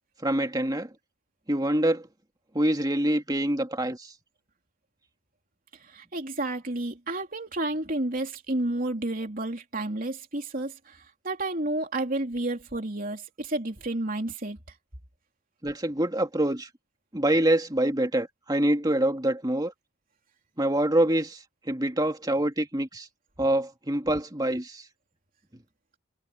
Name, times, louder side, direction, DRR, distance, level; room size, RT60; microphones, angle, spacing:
voice 1, 0.2-0.9 1.5-2.1 2.5-4.1 15.6-16.7 17.1-19.7 20.6-23.1 23.4-24.8, right 1 dB, 20° right, 2.3 m, -25 dB
voice 2, 5.8-14.6, right 2 dB, 45° right, 3.5 m, -31 dB
head